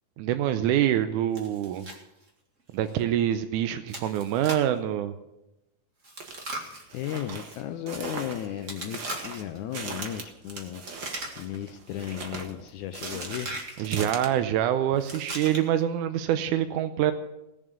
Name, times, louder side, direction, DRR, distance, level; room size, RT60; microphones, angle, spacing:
voice 1, 0.2-1.9 2.7-5.1 13.8-17.1, right 11 dB, 80° right, 9 dB, 1.8 m, -25 dB
Chewing mastication, 1.3-2.0 2.3-2.4 2.9-3.0 3.9-4.8 6.0-7.6 8.6-9.6 10.4-11.6 11.9-12.3 13.0-13.8 15.0-15.8, right 2 dB, 30° right, 1.6 m, -39 dB
sound 1, 6.2-6.4 6.9-14.3, right 4 dB, 50° right, 1.5 m, -39 dB
voice 2, 6.9-10.8 11.4-13.6, left 11 dB, 85° left, 8 dB, 1.7 m, -35 dB
19.0 x 7.3 x 6.9 m, 0.92 s
omnidirectional pair, 4.2 m